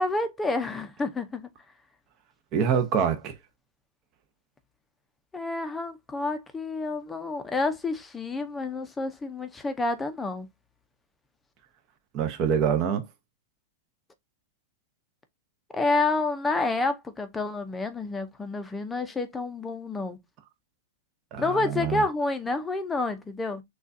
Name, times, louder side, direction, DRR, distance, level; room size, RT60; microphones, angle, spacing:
voice 1, 0.0-1.5 5.3-10.5 15.7-20.2 21.4-23.6, left 3 dB, 10° left, 0.7 m, -29 dB
voice 2, 2.5-3.4 12.1-13.1 21.3-22.0, right 7 dB, 35° right, 0.8 m, -25 dB
6.3 x 2.4 x 2.6 m
hypercardioid pair, 145°, 0 cm